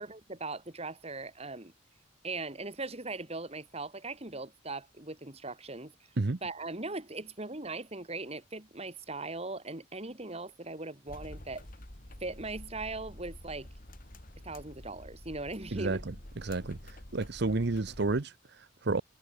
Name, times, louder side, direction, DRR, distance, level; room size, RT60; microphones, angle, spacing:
voice 1, 0.0-1.7 2.2-5.9 6.4-11.6 12.2-13.7 14.4-16.0, right 3 dB, 30° right, 2.7 m, -39 dB
sound 1, 11.1-18.2, left 1 dB, 45° left, 3.1 m, -48 dB
voice 2, 15.7-19.0, right 3 dB, 60° right, 0.8 m, -31 dB
head